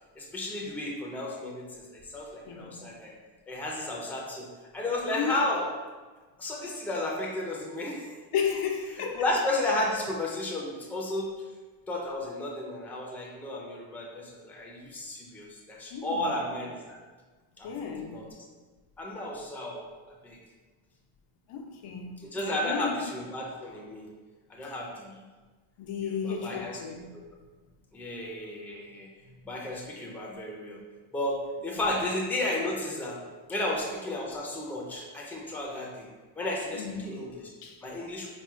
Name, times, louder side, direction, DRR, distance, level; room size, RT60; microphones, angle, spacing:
voice 1, 0.2-3.1 3.5-4.5 4.7-5.6 6.4-8.1 9.1-11.3 11.9-17.0 17.6-18.3 19.0-19.9 20.2-20.4 22.3-24.0 24.5-25.2 26.0-26.8 27.1-27.2 27.9-29.1 29.4-30.8 31.1-33.2 33.5-36.1 36.4-37.5 37.8-38.3, left 1 dB, 5° left, -2 dB, 0.4 m, -33 dB
voice 2, 2.5-2.8 5.1-5.4 8.3-9.3 15.9-16.4 17.6-18.2 21.5-23.1 24.6-24.7 25.8-27.1 28.2-28.5 31.9-32.0 36.7-37.8, left 7 dB, 85° left, 2 dB, 0.7 m, -34 dB
4.3 x 2.2 x 3.6 m, 1.3 s
cardioid pair, 140°, 50 cm